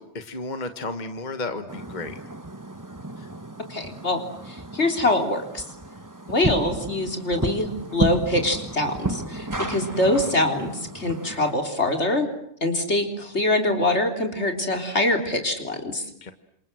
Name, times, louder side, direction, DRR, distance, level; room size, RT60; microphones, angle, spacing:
voice 1, 0.0-2.2 3.2-3.3 9.7-9.9 16.2-16.3, left 3 dB, 40° left, 8 dB, 1.6 m, -33 dB
sound 1, 1.7-11.5, right 2 dB, 15° right, 1.5 m, -33 dB
voice 2, 3.7-5.6 6.3-12.3 12.6-16.0, left 1 dB, 75° left, 4 dB, 4.1 m, -24 dB
28.5 x 27.0 x 7.8 m, 0.71 s
omnidirectional pair, 1.2 m